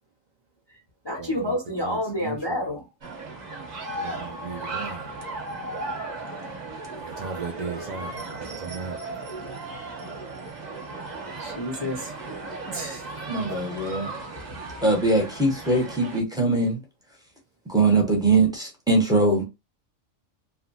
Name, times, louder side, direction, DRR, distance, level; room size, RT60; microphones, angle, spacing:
voice 1, 1.0-2.9 11.4-12.1 12.7-13.0, left 1 dB, 30° left, 0.5 m, -29 dB
voice 2, 1.9-2.6 3.9-5.1 6.9-9.0, right 5 dB, 70° right, 0.4 m, -36 dB
sound 1, 3.0-16.2, right 2 dB, 40° right, 0.7 m, -36 dB
voice 3, 13.3-14.1 14.8-16.8 17.7-19.4, right 2 dB, 5° right, 0.7 m, -21 dB
2.8 x 2.5 x 2.6 m
omnidirectional pair, 1.4 m